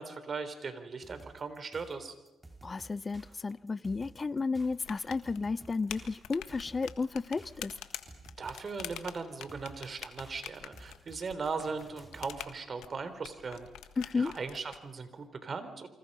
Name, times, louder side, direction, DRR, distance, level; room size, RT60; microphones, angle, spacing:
voice 1, 0.0-2.1 8.4-13.7 14.1-15.9, right 4 dB, 45° right, 3.6 m, -38 dB
sound 1, 1.0-12.4, right 2 dB, 15° right, 4.9 m, -53 dB
voice 2, 2.6-7.7 14.0-14.4, left 4 dB, 35° left, 0.7 m, -33 dB
sound 2, 4.8-14.8, left 11 dB, 85° left, 1.6 m, -46 dB
28.5 x 25.5 x 5.5 m
supercardioid pair, 65°, 0 cm